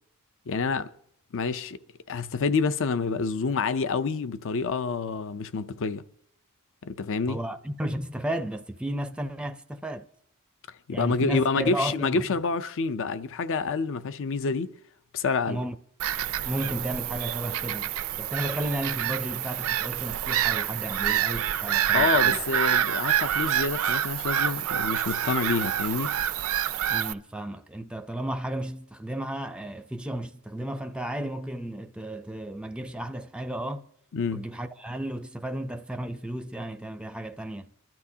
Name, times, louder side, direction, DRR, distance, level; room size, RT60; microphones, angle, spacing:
voice 1, 0.5-0.9 1.3-1.8 2.1-6.0 6.8-7.4 10.9-14.7 15.1-15.6 21.9-26.1 34.1-34.4, left 4 dB, 60° left, 0.5 m, -28 dB
voice 2, 7.3-10.0 10.9-12.2 15.5-15.8 16.4-22.4 26.9-33.8 34.3-37.7, right 1 dB, 5° right, 0.5 m, -33 dB
Bird vocalization bird call bird song / Gull seagull, 16.0-27.1, right 10 dB, 65° right, 0.4 m, -27 dB
25.5 x 12.0 x 2.8 m
head